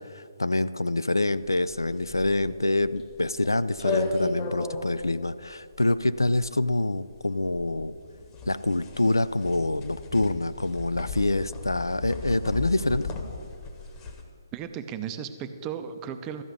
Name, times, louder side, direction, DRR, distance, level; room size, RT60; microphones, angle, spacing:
voice 1, 0.0-7.9 8.5-13.1, left 2 dB, 75° left, 14 dB, 0.4 m, -26 dB
sound 1, 1.5-14.2, left 3 dB, 20° left, 1.0 m, -35 dB
voice 2, 14.5-16.4, right 8 dB, 15° right, 8 dB, 0.5 m, -35 dB
13.0 x 5.6 x 8.1 m, 2.2 s
figure-of-eight pair, 140°, 2 cm